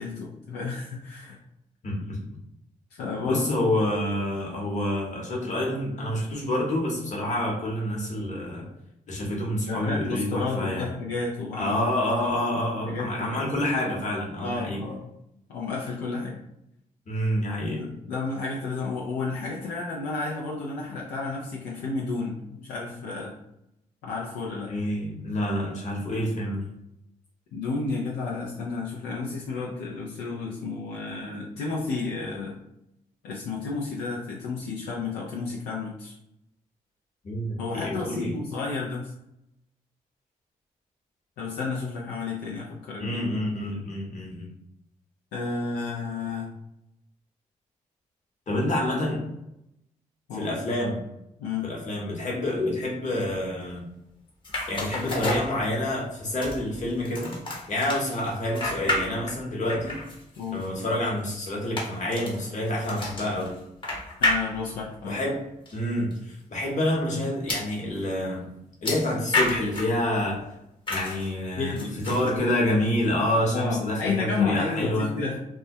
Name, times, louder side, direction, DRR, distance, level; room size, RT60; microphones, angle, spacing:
voice 1, 0.0-1.4 2.9-3.5 9.7-11.8 12.8-13.6 14.4-15.1 15.5-16.4 17.6-23.4 24.0-24.7 27.5-32.6 33.2-36.1 37.6-39.1 41.4-43.3 43.6-43.8 45.3-46.5 50.3-50.5 51.4-51.7 60.4-60.6 64.2-65.2 71.5-72.0 73.5-75.4, left 4 dB, 85° left, -4 dB, 0.4 m, -31 dB
voice 2, 1.8-2.2 3.2-8.7 9.1-10.9 11.6-14.8 17.1-17.8 24.7-26.6 37.2-38.3 43.0-44.5 48.5-49.2 50.3-51.0 51.6-53.8 54.7-57.4 57.7-60.0 60.5-63.5 65.0-65.4 65.7-68.5 68.8-70.4 70.9-71.7 72.0-75.1, left 1 dB, 50° left, -2 dB, 1.0 m, -28 dB
sound 1, 54.4-56.0 56.4-59.4 59.7-64.9 65.6-65.8 66.1-66.2 67.5-67.7 68.8-70.0 70.9-71.3 71.8-72.4, left 2 dB, 30° left, 0.8 m, -31 dB
2.2 x 2.1 x 2.6 m, 0.82 s
supercardioid pair, 50°, 16 cm